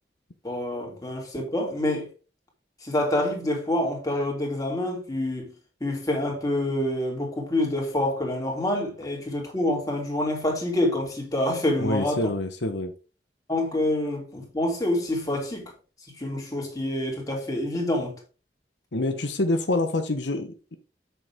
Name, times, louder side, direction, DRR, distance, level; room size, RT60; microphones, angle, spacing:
voice 1, 0.4-2.1 2.8-5.5 5.8-12.3 13.5-15.7 16.2-18.2, left 1 dB, 20° left, 3.0 m, -27 dB
voice 2, 11.8-12.9 18.9-20.8, left 2 dB, 85° left, 1.2 m, -26 dB
8.1 x 6.9 x 3.6 m
head